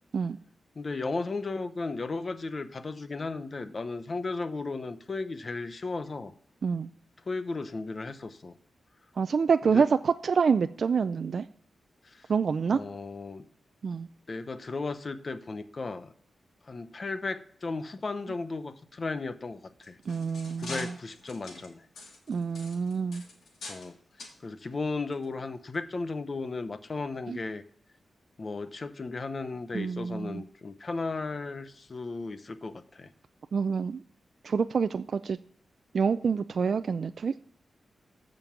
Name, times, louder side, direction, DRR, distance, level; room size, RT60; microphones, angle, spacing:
voice 1, 0.8-6.3 7.3-8.5 9.7-9.8 12.0-12.3 12.7-13.4 14.3-16.1 16.7-20.0 20.6-21.8 23.7-24.0 24.4-27.6 28.4-33.1, left 3 dB, 40° left, 12 dB, 0.8 m, -35 dB
voice 2, 9.2-11.4 12.3-12.8 13.8-14.1 20.1-20.9 22.3-23.2 27.3-27.4 29.7-30.4 33.5-34.0 34.4-35.4 35.9-37.4, right 5 dB, 55° right, 10 dB, 0.4 m, -27 dB
sound 1, 19.7-23.9 24.2-24.4 25.1-25.2 25.7-25.8, left 3 dB, 80° left, 2.8 m, -44 dB
14.5 x 5.2 x 5.9 m, 0.63 s
wide cardioid pair, 120°, 0 cm